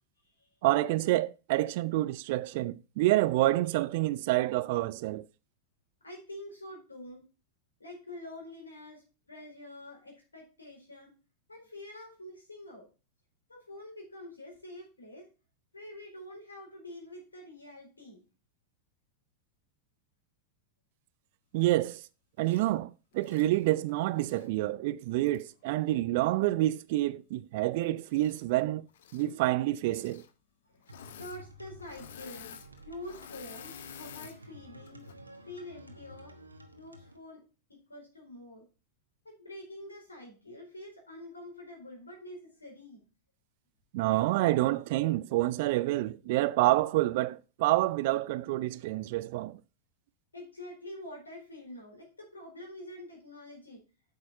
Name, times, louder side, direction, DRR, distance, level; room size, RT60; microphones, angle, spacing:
voice 1, 0.6-5.3 21.5-22.0 22.4-28.9 29.1-30.2 43.9-49.6, right 16 dB, 50° right, 0.5 m, -28 dB
voice 2, 6.0-7.2 7.8-9.0 9.3-11.1 11.5-12.9 13.5-15.3 15.7-18.2 30.7-35.0 35.4-36.3 36.7-37.4 37.7-38.7 39.2-43.0 50.3-53.8, left 1 dB, 80° left, 4.4 m, -46 dB
Engine / Mechanisms, 22.4-22.7 23.2-24.5 25.3-25.4 28.1-28.6 28.9-29.3 29.8-30.3 30.8-31.4 31.7-34.4 34.9-35.1, left 9 dB, 60° left, 0.8 m, -50 dB
sound 1, 30.9-37.2, right 1 dB, 80° right, 1.2 m, -52 dB
8.5 x 6.8 x 4.1 m
figure-of-eight pair, 90°, 0 cm